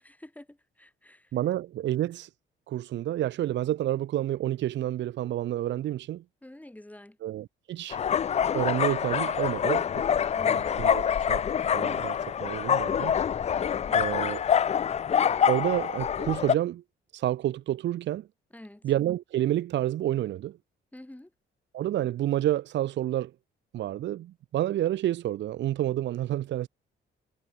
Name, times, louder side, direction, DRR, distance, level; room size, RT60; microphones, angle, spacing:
voice 1, 0.0-1.3 6.4-7.2 10.3-10.7 13.5-14.0 18.5-18.8 20.9-21.3, left 1 dB, 5° left, 7.5 m, -48 dB
voice 2, 1.3-2.3 2.7-6.2 7.2-8.0 8.5-10.0 10.8-11.4 11.7-13.2 13.9-14.4 15.5-16.8 17.1-18.3 18.8-20.6 21.7-23.3 23.7-26.7, right 13 dB, 65° right, 0.6 m, -29 dB
sound 1, 7.9-16.5, left 8 dB, 35° left, 0.4 m, -26 dB
cardioid pair, 90°, 20 cm